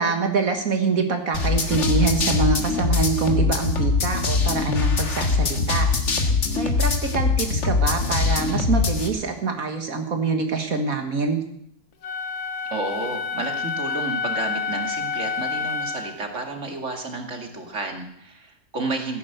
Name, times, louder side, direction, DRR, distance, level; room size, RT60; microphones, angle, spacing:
voice 1, 0.0-5.9 6.5-11.4, right 4 dB, 65° right, 5 dB, 2.0 m, -25 dB
sound 1, 1.3-9.1, left 4 dB, 50° left, 1.8 m, -22 dB
Wind instrument woodwind instrument, 12.0-16.2, left 5 dB, 75° left, 1.6 m, -28 dB
voice 2, 12.7-19.2, right 3 dB, 50° right, 4 dB, 2.7 m, -31 dB
15.5 x 10.5 x 8.0 m, 0.69 s
omnidirectional pair, 1.6 m